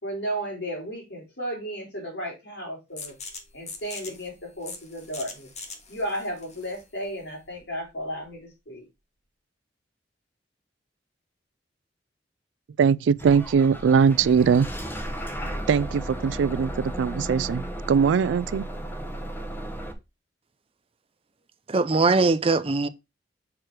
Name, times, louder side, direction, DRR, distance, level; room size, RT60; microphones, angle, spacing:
voice 1, 0.0-3.1 3.5-5.5 5.9-8.8, equal, 70° left, 4.1 m, -34 dB
sound 1, 3.0-8.4, left 4 dB, 40° left, 1.5 m, -43 dB
voice 2, 12.8-14.7 15.7-18.7, right 6 dB, 90° right, 0.3 m, -21 dB
Bus / Engine starting, 13.2-19.9, right 1 dB, 10° left, 1.1 m, -34 dB
voice 3, 21.7-22.9, right 3 dB, 30° right, 0.5 m, -21 dB
6.0 x 4.8 x 4.7 m
head